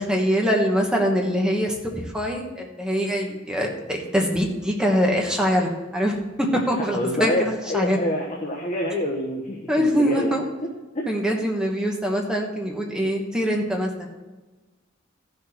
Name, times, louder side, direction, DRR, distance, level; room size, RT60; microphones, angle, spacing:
voice 1, 0.0-8.0 9.7-10.4 11.1-14.1, equal, 5° right, 0 dB, 1.3 m, -23 dB
voice 2, 6.5-10.4 10.9-11.0, left 1 dB, 35° left, -1 dB, 1.3 m, -27 dB
14.0 x 6.5 x 4.4 m, 1.2 s
head